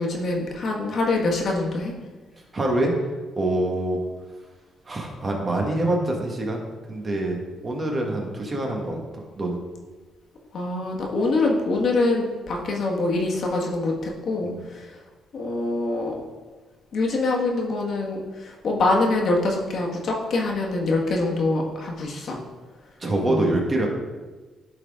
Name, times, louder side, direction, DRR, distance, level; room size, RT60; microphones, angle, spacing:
voice 1, 0.0-1.9 10.5-14.5 15.3-16.2 16.9-22.4 23.3-23.5, left 2 dB, 60° left, -1 dB, 1.5 m, -24 dB
voice 2, 2.5-2.9 3.3-4.0 4.9-6.6 6.9-9.0 9.4-9.6 14.4-14.6 23.0-23.9, right 1 dB, 30° right, 0 dB, 1.7 m, -25 dB
11.5 x 4.3 x 3.7 m, 1.3 s
cardioid pair, 90°, 0 cm